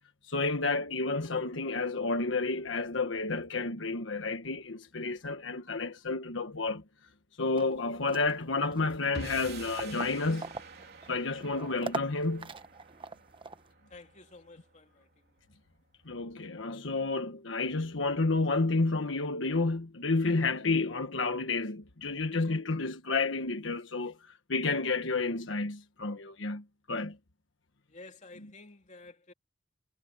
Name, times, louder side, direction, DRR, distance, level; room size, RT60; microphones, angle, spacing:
voice 1, 0.3-6.8 7.4-10.5 11.1-12.5 16.0-24.2 24.5-27.2 28.4-28.5, left 3 dB, 80° left, 1.3 m, -30 dB
sound 1, 7.6-13.7, right 3 dB, 25° right, 1.0 m, -43 dB
sound 2, 9.1-15.5, right 3 dB, 55° right, 3.5 m, -47 dB
voice 2, 13.9-15.1 27.9-29.3, left 3 dB, 40° left, 2.9 m, -51 dB
head